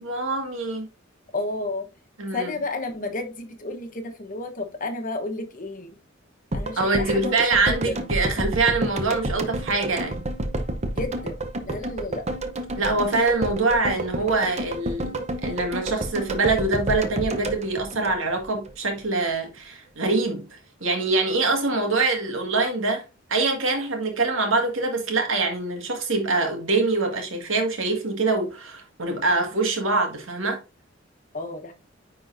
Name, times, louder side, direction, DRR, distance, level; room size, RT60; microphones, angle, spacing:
voice 1, 0.1-0.9 2.2-2.5 6.8-10.2 12.8-23.0 23.3-30.6, right 3 dB, 85° right, 1.8 m, -24 dB
voice 2, 1.3-1.9 2.3-6.0 6.5-8.1 11.0-11.4 11.7-12.2 12.8-13.1 31.3-31.7, left 2 dB, 45° left, 1.0 m, -32 dB
sound 1, 6.5-18.7 19.0-19.1, right 1 dB, 35° right, 0.8 m, -30 dB
9.8 x 3.8 x 2.6 m
head